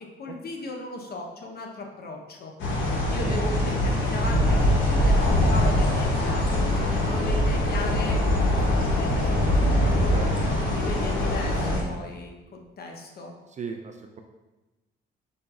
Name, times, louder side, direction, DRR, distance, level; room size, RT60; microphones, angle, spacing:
voice 1, 0.2-2.5 3.1-8.2 8.7-10.2 10.6-13.3, left 2 dB, 50° left, 2 dB, 0.8 m, -37 dB
sound 1, 2.6-11.8, left 1 dB, 75° left, 1.0 m, -23 dB
voice 2, 13.5-14.2, right 6 dB, 35° right, 4 dB, 0.4 m, -36 dB
5.1 x 3.9 x 2.4 m, 1.1 s
cardioid pair, 90°, 20 cm